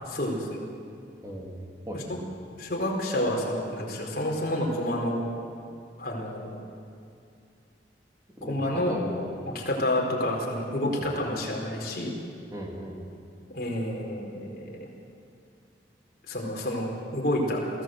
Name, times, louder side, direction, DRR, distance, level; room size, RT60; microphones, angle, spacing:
voice 1, 0.1-0.6 2.6-5.2 6.0-6.6 8.4-8.9 9.5-12.1 13.5-14.9 16.3-17.6, left 1 dB, 55° left, -2 dB, 4.4 m, -29 dB
voice 2, 1.2-1.6 1.8-2.4 8.4-9.3 10.9-11.1 12.5-13.0, equal, 20° right, -2 dB, 3.3 m, -37 dB
23.0 x 15.5 x 7.9 m, 2.4 s
head